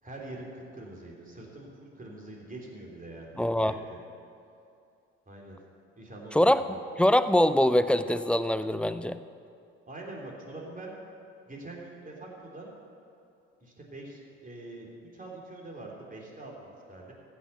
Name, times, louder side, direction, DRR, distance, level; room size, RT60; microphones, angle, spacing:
voice 1, 0.0-3.3 3.6-4.0 5.3-5.6 6.0-6.7 9.9-10.9 11.5-12.7 13.6-17.1, right 2 dB, 25° right, -2 dB, 3.4 m, -44 dB
voice 2, 3.4-3.7 6.3-6.6 7.0-9.2, left 1 dB, 5° left, 12 dB, 0.4 m, -23 dB
15.0 x 6.3 x 6.9 m, 2.5 s
hypercardioid pair, 50°, 35 cm